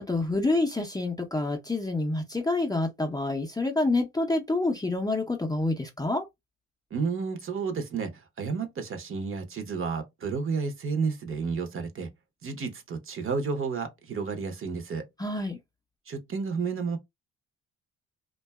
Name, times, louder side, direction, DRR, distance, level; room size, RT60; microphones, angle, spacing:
voice 1, 0.0-6.2 15.2-15.6, left 2 dB, 10° left, 0.6 m, -27 dB
voice 2, 6.9-12.1 12.4-15.0 16.1-17.0, right 5 dB, 40° right, 0.8 m, -31 dB
2.5 x 2.3 x 2.2 m
supercardioid pair, 65°, 32 cm